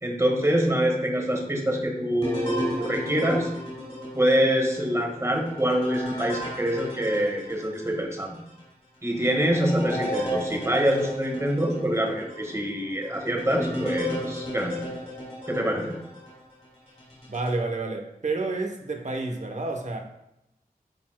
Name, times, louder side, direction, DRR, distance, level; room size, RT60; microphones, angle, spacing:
voice 1, 0.0-3.5 4.1-8.4 9.0-14.8 15.5-16.0, equal, 20° right, 1 dB, 1.6 m, -25 dB
sound 1, 2.2-8.0 8.5-8.6 9.2-16.4 17.0-17.6, equal, 40° left, 2.3 m, -35 dB
voice 2, 17.3-20.0, right 3 dB, 50° right, 4 dB, 0.9 m, -29 dB
10.0 x 4.2 x 2.2 m, 0.87 s
wide cardioid pair, 50°, 15 cm